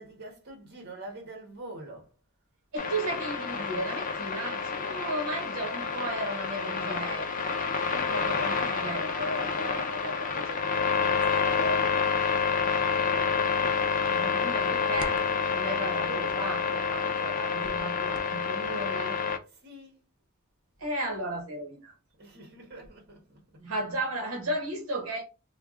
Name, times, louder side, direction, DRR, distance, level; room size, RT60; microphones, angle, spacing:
voice 1, 0.0-2.1 12.8-13.0 14.9-15.0 15.5-15.7 19.5-20.0 22.2-23.4, right 2 dB, 50° right, 1.4 m, -45 dB
voice 2, 2.7-7.7 7.9-11.8 14.1-15.2 15.5-19.2 20.8-21.9 23.6-25.2, right 1 dB, 75° right, 1.0 m, -35 dB
sound 1, 2.8-19.4, left 5 dB, 40° left, 0.5 m, -28 dB
3.4 x 2.3 x 3.7 m
head